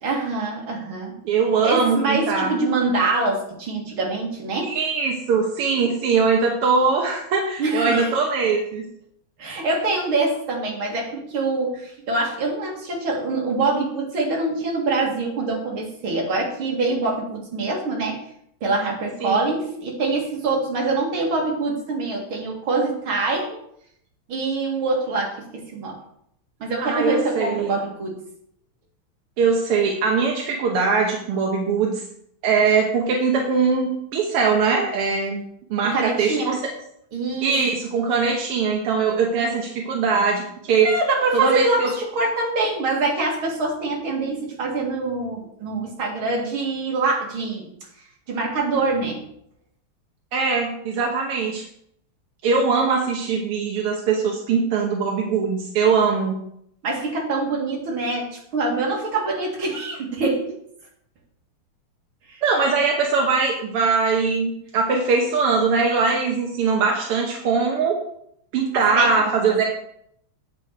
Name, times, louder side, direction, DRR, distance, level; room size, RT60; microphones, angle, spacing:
voice 1, 0.0-1.1 1.6-4.8 7.6-8.1 9.4-18.2 18.6-23.6 24.3-26.0 26.6-28.2 35.8-36.5 37.1-37.5 40.8-47.7 48.3-49.2 56.8-60.5 62.3-62.4 68.9-69.1, right 3 dB, 70° right, -1 dB, 2.9 m, -24 dB
voice 2, 1.2-2.5 4.6-8.9 19.2-19.4 26.8-27.8 29.4-32.0 32.4-35.4 35.7-36.6 37.4-40.9 41.3-41.9 50.3-51.6 52.4-56.4 62.4-68.0 68.5-69.6, right 5 dB, 90° right, 0 dB, 2.0 m, -21 dB
8.5 x 6.4 x 4.6 m, 0.71 s
omnidirectional pair, 2.4 m